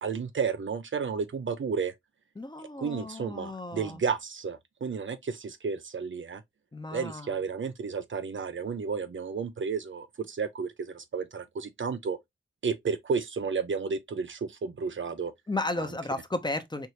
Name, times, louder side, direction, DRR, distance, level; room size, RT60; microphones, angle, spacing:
voice 1, 0.0-1.9 2.8-6.4 6.9-12.2 12.6-15.3 15.8-15.9, right 5 dB, 70° right, 0.6 m, -32 dB
voice 2, 2.4-4.0 6.7-7.4 15.5-16.9, left 2 dB, 20° left, 0.7 m, -34 dB
4.6 x 2.6 x 2.9 m
wide cardioid pair, 80°, 21 cm